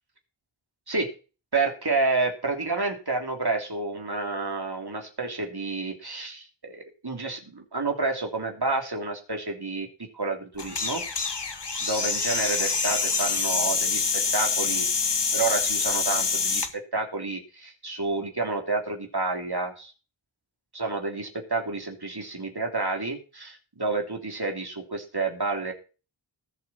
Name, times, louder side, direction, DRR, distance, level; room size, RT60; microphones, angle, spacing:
voice 1, 1.5-11.0 11.8-15.1 15.3-19.9 20.7-25.7, right 3 dB, 55° right, 3 dB, 3.4 m, -29 dB
sound 1, 10.6-16.7, left 5 dB, 65° left, 1.5 m, -26 dB
20.0 x 7.7 x 4.4 m, 0.34 s
wide cardioid pair, 45°, 45 cm